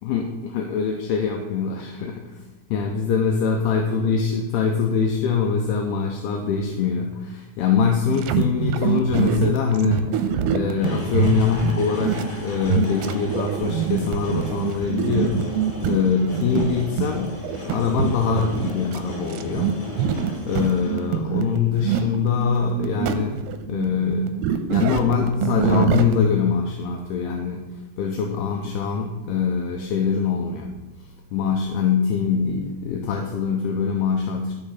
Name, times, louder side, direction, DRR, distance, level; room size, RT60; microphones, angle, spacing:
voice 1, 0.0-2.5 2.7-17.4 17.7-19.7 20.4-23.4 23.7-30.7 31.3-34.5, left 6 dB, 80° left, 2 dB, 2.6 m, -23 dB
sound 1, 8.2-26.2, right 8 dB, 80° right, 2.5 m, -25 dB
sound 2, 10.7-21.4 22.5-22.6, left 2 dB, 25° left, 3.1 m, -35 dB
13.0 x 4.8 x 5.8 m, 1.1 s
omnidirectional pair, 5.0 m